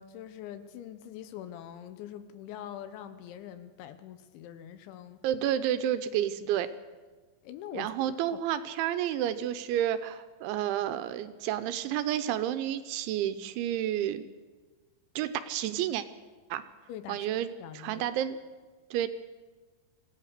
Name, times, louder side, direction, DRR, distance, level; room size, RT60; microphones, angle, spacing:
voice 1, 0.0-5.2 7.4-8.4 16.9-17.3 17.6-18.1, left 10 dB, 75° left, 11 dB, 3.2 m, -44 dB
voice 2, 5.2-6.7 7.7-14.3 15.2-16.1 16.5-16.6 17.1-17.5 17.7-18.4 18.9-19.1, right 11 dB, 80° right, 11 dB, 3.0 m, -30 dB
26.0 x 16.5 x 6.6 m, 1.4 s
omnidirectional pair, 5.7 m